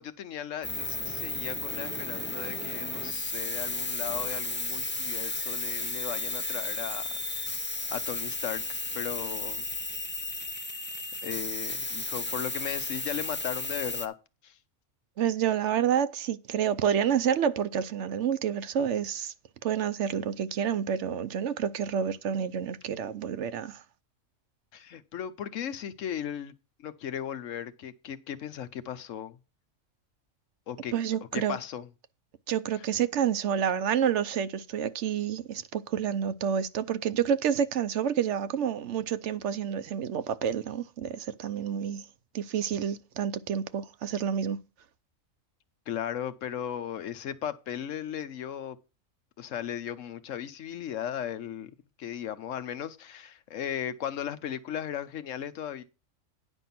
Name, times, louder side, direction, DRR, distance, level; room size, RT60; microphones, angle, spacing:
voice 1, 0.0-7.1 7.4-8.6 8.9-9.7 11.2-14.1 14.4-14.5 24.7-26.5 26.8-29.4 30.7-30.9 31.3-31.9 32.7-32.8 45.9-48.8 49.4-51.7 52.0-55.8, left 9 dB, 75° left, 1.1 m, -36 dB
sound 1, 0.6-14.1, left 2 dB, 15° left, 0.4 m, -34 dB
voice 2, 15.2-19.3 19.6-23.8 30.9-31.6 32.5-42.0 42.3-44.6, right 8 dB, 70° right, 0.9 m, -29 dB
10.0 x 5.4 x 5.9 m
omnidirectional pair, 1.3 m